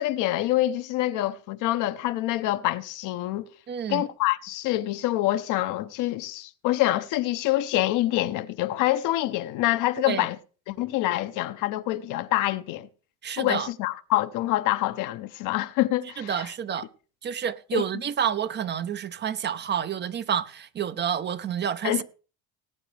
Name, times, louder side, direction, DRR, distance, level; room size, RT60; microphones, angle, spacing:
voice 1, 0.0-3.5 3.9-10.4 10.7-12.9 13.4-16.5 17.7-17.8 21.8-22.0, left 15 dB, 70° left, 0.8 m, -26 dB
voice 2, 3.7-4.1 10.1-10.3 13.2-13.7 16.2-16.9 17.2-22.0, right 8 dB, 30° right, 0.6 m, -29 dB
19.0 x 8.9 x 3.3 m
supercardioid pair, 110°, 33 cm